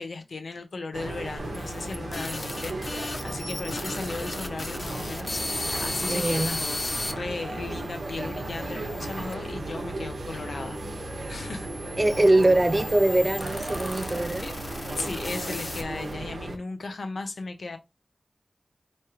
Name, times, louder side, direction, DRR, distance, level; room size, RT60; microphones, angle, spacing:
voice 1, 0.0-10.8 11.3-11.7 14.4-14.5 15.0-17.8, left 3 dB, 85° left, 0.7 m, -36 dB
sound 1, 0.9-16.6, right 2 dB, 80° right, 0.9 m, -35 dB
sound 2, 1.4-7.1 7.8-9.3 10.1-16.1, left 2 dB, 45° left, 0.9 m, -36 dB
voice 2, 6.1-6.6 12.0-14.5, right 1 dB, 30° right, 0.3 m, -22 dB
4.7 x 3.1 x 2.9 m
wide cardioid pair, 75°, 0 cm